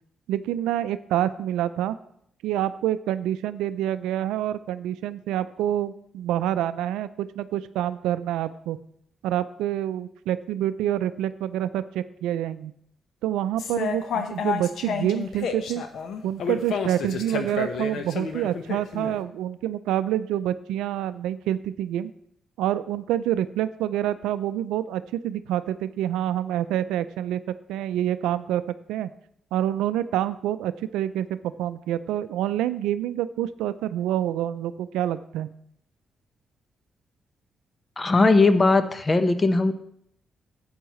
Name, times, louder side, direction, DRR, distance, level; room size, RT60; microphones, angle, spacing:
voice 1, 0.3-2.0 2.4-8.8 9.2-12.7 13.2-15.8 16.2-22.1 22.6-27.4 27.7-28.6 28.9-29.1 29.5-35.5, right 12 dB, 90° right, 13 dB, 0.4 m, -27 dB
sound 1, 13.6-19.1, left 6 dB, 75° left, 0.9 m, -30 dB
voice 2, 38.0-39.7, left 3 dB, 35° left, 10 dB, 1.0 m, -19 dB
12.5 x 8.9 x 3.1 m, 0.70 s
supercardioid pair, 55°, 0 cm